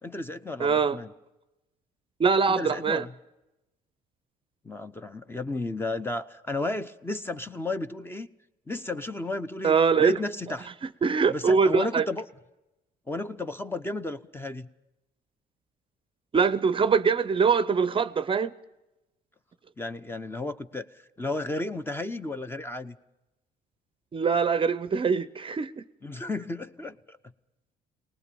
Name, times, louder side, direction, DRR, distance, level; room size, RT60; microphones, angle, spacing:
voice 1, 0.0-1.1 2.5-3.1 4.6-8.3 8.7-10.7 11.3-12.2 13.1-14.7 19.8-23.0 26.0-27.2, left 2 dB, 15° left, 0.8 m, -33 dB
voice 2, 0.6-1.0 2.2-3.0 9.6-10.2 11.0-12.0 16.3-18.5 24.1-25.8, right 5 dB, 30° right, 0.6 m, -23 dB
22.0 x 19.5 x 7.0 m
cardioid pair, 110°, 17 cm